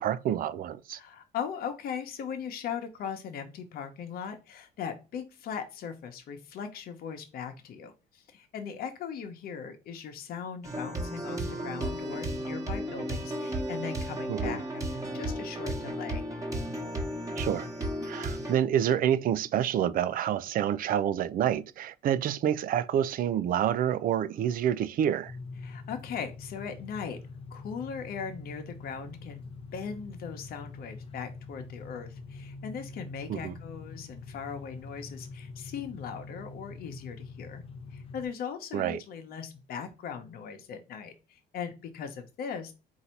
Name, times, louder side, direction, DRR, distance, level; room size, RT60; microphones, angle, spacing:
voice 1, 0.0-1.0 14.3-14.6 17.4-17.7 18.0-25.3 33.3-33.5 38.7-39.0, right 10 dB, 55° right, 0.5 m, -28 dB
voice 2, 0.9-16.2 21.4-21.5 25.6-27.2 27.5-37.6 37.9-42.7, left 7 dB, 60° left, 1.0 m, -39 dB
sound 1, 10.6-18.6, right 1 dB, 20° right, 1.2 m, -34 dB
sound 2, 25.3-38.3, left 3 dB, 35° left, 0.7 m, -44 dB
4.0 x 2.7 x 4.4 m
cardioid pair, 110°, 17 cm